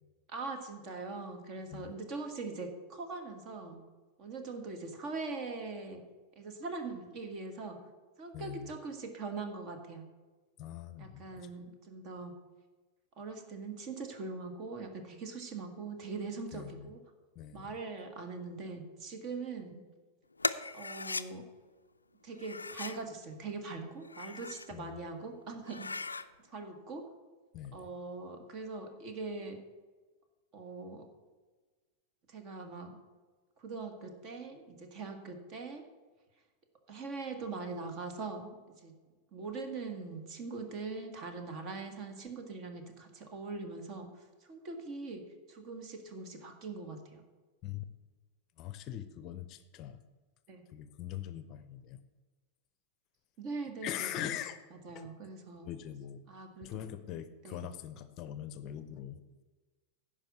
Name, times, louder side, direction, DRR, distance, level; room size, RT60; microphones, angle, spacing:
voice 1, 0.3-3.8 4.2-6.0 6.4-7.8 8.2-10.0 11.0-12.3 13.2-17.0 17.5-19.8 20.7-21.5 22.2-25.9 26.5-27.1 27.7-29.6 30.5-31.1 32.3-33.0 33.6-35.8 36.9-38.6 38.8-38.9 39.3-45.2 45.5-47.2 50.5-50.6 53.4-54.3 54.8-55.7 56.3-56.7 57.4-57.7, right 3 dB, 40° right, 6 dB, 1.6 m, -42 dB
voice 2, 8.3-8.7 10.6-11.5 16.5-16.9 17.3-17.8 24.7-25.1 27.5-27.9 47.6-47.9 48.6-50.0 50.7-52.0 53.8-54.6 54.9-55.1 55.6-56.2 56.6-59.2, left 11 dB, 40° left, 12 dB, 0.6 m, -42 dB
sound 1, 20.4-21.3 22.4-23.0 23.9-24.7 25.1-25.2 25.6-26.3, left 3 dB, 80° left, 0.4 m, -37 dB
10.5 x 5.2 x 8.4 m, 1.3 s
figure-of-eight pair, 90°, 0 cm